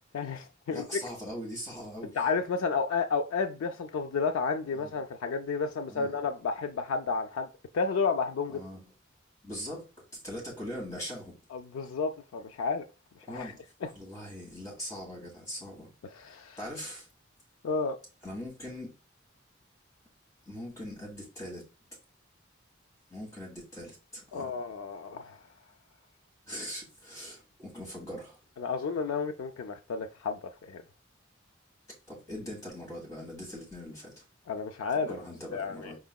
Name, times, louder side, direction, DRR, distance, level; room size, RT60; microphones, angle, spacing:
voice 1, 0.1-1.0 2.2-7.5 7.7-8.6 11.5-12.8 13.3-13.5 16.2-16.6 17.6-18.0 24.3-25.4 28.6-30.4 30.7-30.8 34.5-35.2 35.5-35.9, left 5 dB, 85° left, 0.3 m, -31 dB
voice 2, 0.7-2.2 4.8-4.9 5.9-6.1 8.5-8.8 9.4-11.4 13.3-13.6 13.9-15.9 16.6-17.1 18.2-18.9 20.4-21.7 23.1-24.5 26.4-28.4 32.1-34.2 34.9-36.0, equal, 15° left, 1.5 m, -41 dB
4.8 x 3.5 x 2.2 m
head